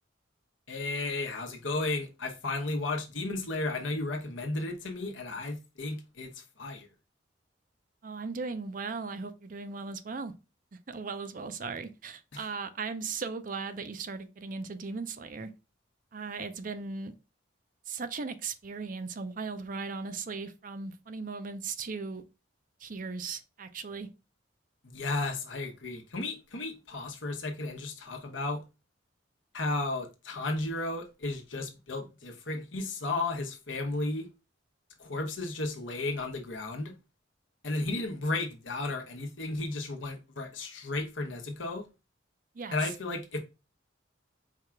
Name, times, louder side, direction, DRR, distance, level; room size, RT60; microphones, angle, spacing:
voice 1, 0.7-6.9 12.3-12.4 24.8-28.6 29.5-34.3 35.0-36.9 37.6-41.9 42.7-43.4, left 2 dB, 75° left, 1.1 m, -34 dB
voice 2, 8.0-10.3 10.7-15.5 16.1-17.1 17.9-22.2 22.8-24.1 42.5-42.9, right 4 dB, 45° right, 0.5 m, -37 dB
4.7 x 2.4 x 4.5 m
head